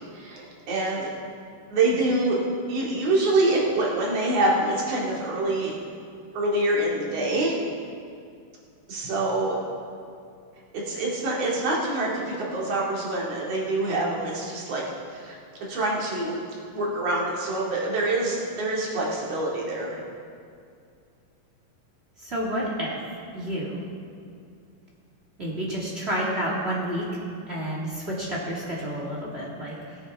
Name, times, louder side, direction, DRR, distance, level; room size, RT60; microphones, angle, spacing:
voice 1, 0.1-1.1 1.7-2.4 2.7-5.7 6.3-7.6 8.9-9.6 10.7-14.8 15.1-15.4 15.7-16.4 16.7-20.0, right 2 dB, 50° right, -4 dB, 3.0 m, -25 dB
voice 2, 22.2-23.0 23.3-23.8 25.4-27.1 27.5-30.0, equal, 25° right, -5 dB, 1.4 m, -30 dB
21.0 x 9.0 x 3.5 m, 2.4 s
omnidirectional pair, 4.1 m